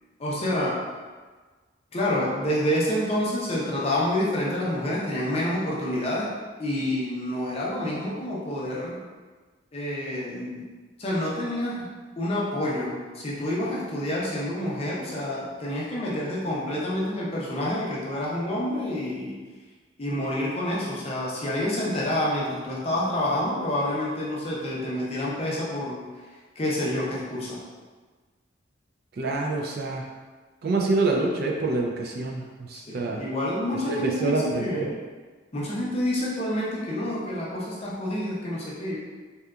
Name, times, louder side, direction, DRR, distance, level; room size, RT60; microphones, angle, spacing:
voice 1, 0.2-0.8 1.9-6.3 6.6-9.0 9.7-10.6 11.0-11.9 12.2-19.3 20.0-26.0 26.6-27.6 32.7-34.9 35.5-39.0, left 1 dB, 30° left, -5 dB, 0.5 m, -28 dB
voice 2, 29.2-30.0 30.6-32.4 32.7-33.2 33.9-34.9, right 2 dB, 50° right, 0 dB, 0.3 m, -26 dB
2.7 x 2.3 x 2.3 m, 1.4 s
head